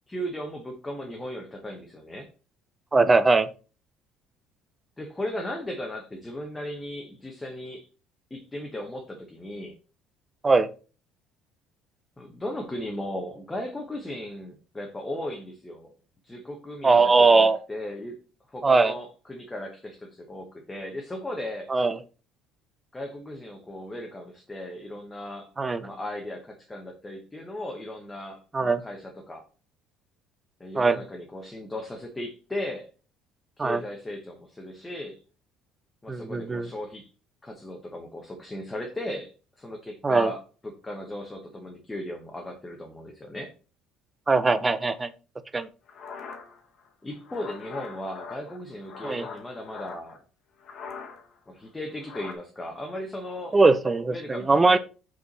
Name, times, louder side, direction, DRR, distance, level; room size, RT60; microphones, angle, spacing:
voice 1, 0.1-2.3 5.0-7.9 8.3-9.8 12.2-15.9 16.2-18.2 18.5-21.7 22.9-25.5 25.8-29.4 30.6-32.9 33.6-35.2 36.0-37.1 37.4-43.5 47.0-50.2 51.5-53.6 54.1-54.8, left 1 dB, 10° left, 1 dB, 0.9 m, -36 dB
voice 2, 2.9-3.5 10.4-10.7 16.8-17.6 18.6-18.9 21.7-22.0 25.6-25.8 28.5-28.8 30.8-31.0 33.6-33.8 36.1-36.7 40.0-40.3 44.3-45.1 45.5-45.7 49.0-49.3 53.5-54.8, right 3 dB, 15° right, 13 dB, 0.5 m, -20 dB
sound 1, 45.9-50.2 50.6-51.4 51.7-52.4, left 5 dB, 40° left, 1.2 m, -42 dB
5.5 x 4.5 x 4.1 m, 0.36 s
cardioid pair, 160°, 0 cm